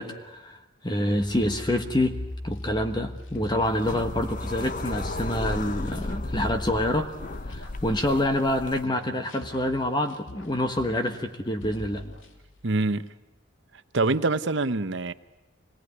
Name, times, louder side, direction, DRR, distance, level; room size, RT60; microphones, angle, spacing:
voice 1, 0.0-2.2 2.4-7.1 7.4-12.1, left 1 dB, 20° left, 1.2 m, -27 dB
sound 1, 1.0-6.9, left 1 dB, 60° left, 7.5 m, -39 dB
sound 2, 2.0-8.5 8.8-11.3 11.6-12.7, left 1 dB, 75° left, 2.6 m, -45 dB
sound 3, 3.6-8.8, left 2 dB, 40° left, 0.8 m, -35 dB
voice 2, 12.6-13.1 13.9-15.1, right 3 dB, 65° right, 0.9 m, -25 dB
25.0 x 19.0 x 9.7 m
head